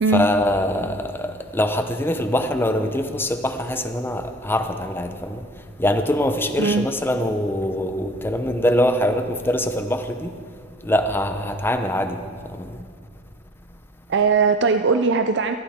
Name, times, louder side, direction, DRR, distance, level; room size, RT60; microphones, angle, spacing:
voice 1, 0.1-10.3 10.8-12.8, left 1 dB, 10° left, 7 dB, 0.8 m, -23 dB
voice 2, 14.1-15.6, right 4 dB, 65° right, 8 dB, 0.5 m, -19 dB
15.5 x 15.0 x 4.3 m, 2.1 s
head